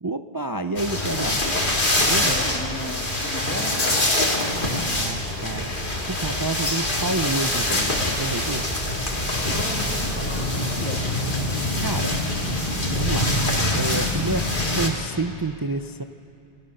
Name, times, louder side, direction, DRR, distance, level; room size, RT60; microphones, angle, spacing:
voice 1, 0.0-1.4 2.0-2.4 4.6-8.7 11.8-12.2 13.0-13.3 13.7-16.0, right 3 dB, 30° right, 8 dB, 0.4 m, -29 dB
sound 1, 0.8-14.9, left 1 dB, 45° left, 2.7 m, -24 dB
sound 2, 1.1-14.8, right 3 dB, 55° right, 3.9 m, -39 dB
voice 2, 2.1-4.2 9.5-11.1, left 1 dB, 10° left, -1 dB, 2.6 m, -35 dB
27.0 x 18.5 x 6.6 m, 2.5 s
omnidirectional pair, 1.2 m